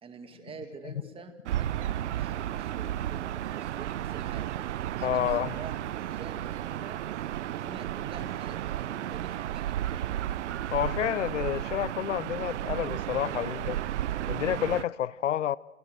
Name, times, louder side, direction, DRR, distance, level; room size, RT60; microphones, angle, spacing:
voice 1, 0.0-4.6 5.0-7.0 7.3-10.2, right 5 dB, 15° right, 2.1 m, -46 dB
Gull seagull / Ocean, 1.4-14.8, right 12 dB, 70° right, 0.7 m, -33 dB
voice 2, 5.0-5.5 10.7-13.8 14.3-15.6, left 11 dB, 80° left, 0.7 m, -29 dB
29.5 x 16.5 x 6.5 m
hypercardioid pair, 120°, 36 cm